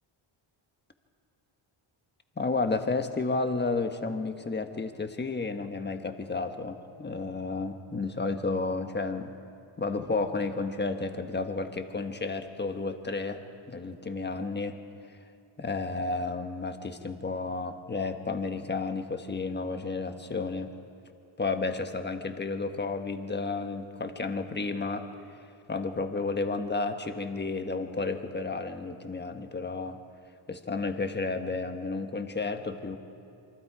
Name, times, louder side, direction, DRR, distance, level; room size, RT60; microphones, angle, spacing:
voice 1, 2.4-9.3 9.8-14.8 15.1-15.2 15.6-20.7 21.4-25.1 25.7-30.0 30.5-33.0, left 3 dB, 20° left, 6 dB, 1.4 m, -32 dB
27.0 x 24.5 x 4.9 m, 2.6 s
wide cardioid pair, 125°, 49 cm